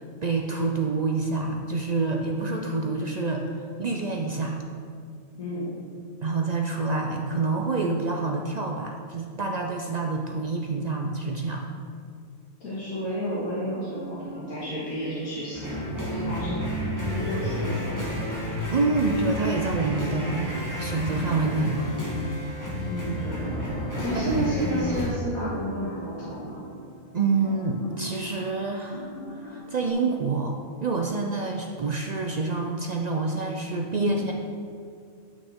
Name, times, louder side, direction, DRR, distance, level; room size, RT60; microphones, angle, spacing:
voice 1, 0.2-3.5 3.8-4.6 6.2-11.6 18.7-21.9 24.1-24.2 27.1-30.5 30.8-34.3, right 3 dB, 65° right, 1 dB, 0.4 m, -27 dB
voice 2, 5.4-5.7 12.6-15.6 16.0-18.2 22.8-23.5 24.0-26.7 33.9-34.2, equal, 90° left, -10 dB, 2.2 m, -31 dB
sound 1, 13.9-29.9, left 1 dB, 35° left, 0.7 m, -42 dB
sound 2, 14.6-24.4, right 2 dB, 40° right, 1.7 m, -41 dB
sound 3, 15.5-25.1, equal, 15° left, 1.4 m, -31 dB
11.0 x 6.1 x 3.6 m, 2.2 s
omnidirectional pair, 1.4 m